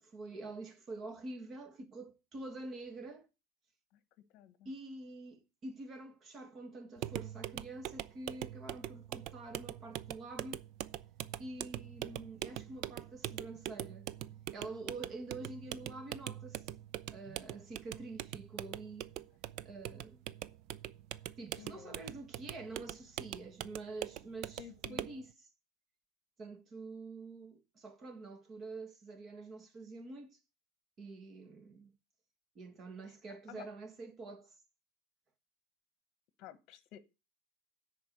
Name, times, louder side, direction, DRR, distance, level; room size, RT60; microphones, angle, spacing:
voice 1, 0.0-3.3 4.6-10.6 11.4-14.1 14.5-16.7 17.1-19.1 19.6-20.2 21.4-25.5 26.4-30.4 31.0-31.9 32.5-34.5, right 2 dB, 25° right, 1.5 m, -47 dB
voice 2, 4.3-4.7 21.6-22.0 24.6-25.0 33.0-33.1 33.5-33.7 36.4-37.0, left 12 dB, 45° left, 1.1 m, -52 dB
sound 1, 7.0-25.2, right 13 dB, 50° right, 0.4 m, -43 dB
10.5 x 4.5 x 7.8 m
supercardioid pair, 160°, 0 cm